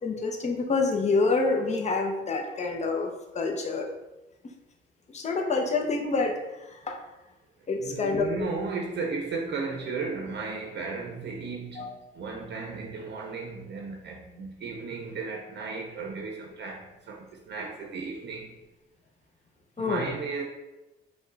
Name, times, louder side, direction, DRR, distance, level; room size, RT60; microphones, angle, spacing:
voice 1, 0.0-3.9 5.1-6.3 6.7-7.0 7.7-8.3 11.8-11.9 19.8-20.0, left 3 dB, 35° left, 0.8 m, -27 dB
voice 2, 7.7-18.5 19.8-20.4, right 4 dB, 60° right, 0.7 m, -35 dB
5.1 x 2.3 x 3.9 m
cardioid pair, 90°, 20 cm